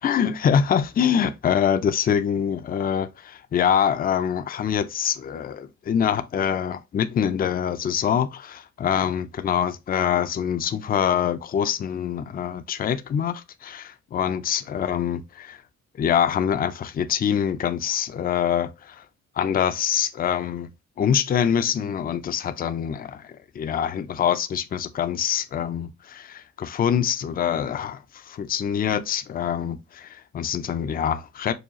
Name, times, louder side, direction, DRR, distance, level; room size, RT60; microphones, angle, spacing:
voice 1, 0.0-15.6 16.0-19.0 19.4-20.7 21.0-31.5, left 8 dB, 30° left, 0.4 m, -25 dB
4.6 x 2.3 x 2.9 m
cardioid pair, 90°, 30 cm